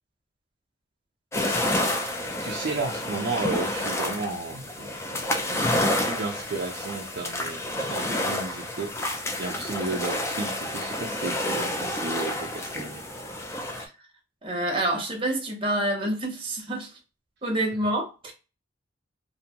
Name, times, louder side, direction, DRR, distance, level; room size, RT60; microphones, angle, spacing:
sound 1, 1.3-13.8, left 1 dB, 15° left, 0.4 m, -29 dB
voice 1, 2.4-8.9 9.4-13.0 17.7-17.8, right 3 dB, 60° right, 0.4 m, -33 dB
voice 2, 14.4-16.9 17.4-18.3, right 1 dB, 30° right, 0.8 m, -27 dB
2.6 x 2.1 x 2.8 m
head